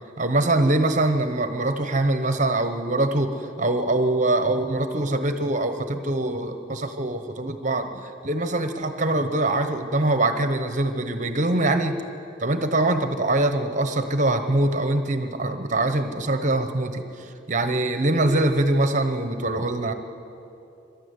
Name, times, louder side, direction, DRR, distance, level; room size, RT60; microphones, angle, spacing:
voice 1, 0.2-12.0 12.4-19.9, right 2 dB, 40° right, 8 dB, 1.1 m, -23 dB
23.0 x 13.0 x 9.6 m, 2.9 s
head